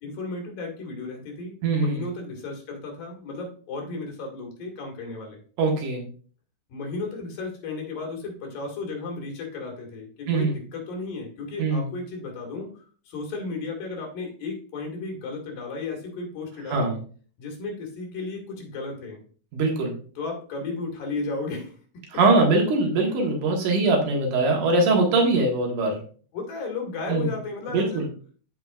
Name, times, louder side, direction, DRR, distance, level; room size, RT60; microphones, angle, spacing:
voice 1, 0.0-5.4 6.7-16.9 17.4-19.2 20.2-22.0 26.3-28.1, left 3 dB, 85° left, 1 dB, 3.7 m, -34 dB
voice 2, 1.6-2.1 5.6-6.1 10.3-10.6 11.6-11.9 16.7-17.0 19.5-19.9 22.1-26.0 27.1-27.3 27.7-28.1, right 3 dB, 70° right, 1 dB, 2.9 m, -22 dB
13.0 x 5.0 x 2.4 m, 0.42 s
omnidirectional pair, 3.9 m